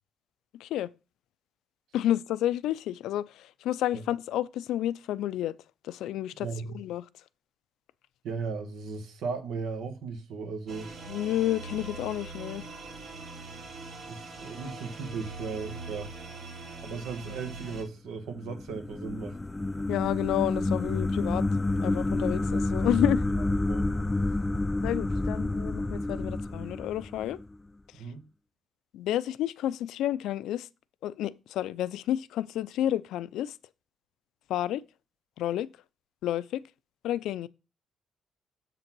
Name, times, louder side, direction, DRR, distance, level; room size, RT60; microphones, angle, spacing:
voice 1, 0.5-0.9 1.9-5.5 5.8-6.5 6.7-7.0 11.1-12.6 19.9-23.2 24.8-27.4 27.9-28.0 28.9-30.7 31.0-33.6 34.5-34.8 35.4-35.7 36.2-36.6 37.0-37.5, left 12 dB, 85° left, 0.4 m, -30 dB
voice 2, 6.4-6.8 8.2-10.9 14.1-16.1 16.8-19.4 23.7-23.9 28.0-28.3, right 5 dB, 85° right, 1.2 m, -36 dB
sound 1, 10.7-17.8, right 3 dB, 65° right, 2.4 m, -42 dB
sound 2, 18.3-27.5, left 2 dB, 15° left, 0.4 m, -29 dB
7.4 x 4.0 x 6.0 m
cardioid pair, 90°, 0 cm